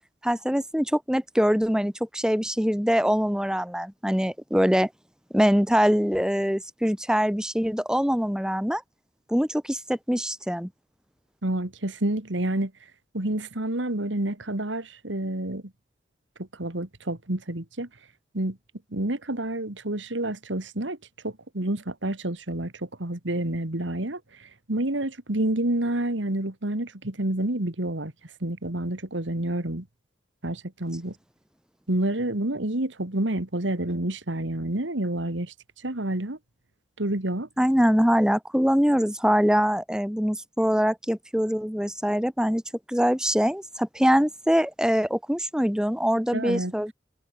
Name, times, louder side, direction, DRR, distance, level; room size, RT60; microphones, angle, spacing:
voice 1, 0.2-4.9 5.3-8.8 9.3-10.7 37.6-42.6 42.9-46.9, equal, 5° right, 1.7 m, -23 dB
voice 2, 11.4-12.7 13.1-15.6 16.4-17.9 18.3-18.6 18.9-21.0 21.2-24.2 24.7-28.1 28.4-29.9 30.4-31.1 31.9-35.5 35.8-36.4 37.0-37.5 46.3-46.7, right 1 dB, 85° right, 2.4 m, -28 dB
head